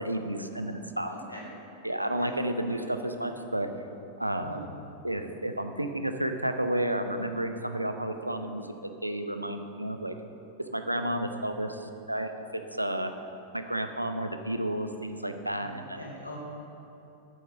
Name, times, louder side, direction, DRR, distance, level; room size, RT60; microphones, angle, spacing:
voice 1, 0.0-1.1 1.8-3.7 4.2-4.6 5.0-10.1 10.6-13.1 13.5-16.0, right 1 dB, 85° right, 7 dB, 0.6 m, -31 dB
voice 2, 1.1-1.5 2.0-2.9 4.4-4.7 10.9-11.1 15.5-16.4, equal, 85° left, -3 dB, 1.9 m, -43 dB
8.6 x 6.3 x 7.0 m, 2.9 s
figure-of-eight pair, 90°, 0 cm